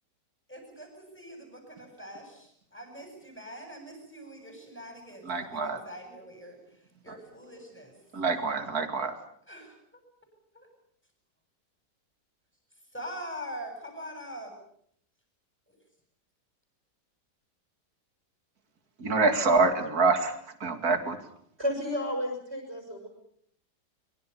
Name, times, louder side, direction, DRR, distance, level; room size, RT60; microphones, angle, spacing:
voice 1, 0.5-6.6 7.0-7.9 9.5-9.8 10.5-10.7 12.9-14.5 15.7-15.8, equal, 5° left, 4 dB, 8.0 m, -43 dB
voice 2, 5.3-5.8 8.1-9.1 19.0-20.3 20.6-21.2, right 3 dB, 55° right, 7 dB, 2.8 m, -25 dB
voice 3, 21.6-23.1, equal, 35° right, 2 dB, 5.9 m, -32 dB
24.5 x 23.5 x 7.0 m, 0.67 s
omnidirectional pair, 1.9 m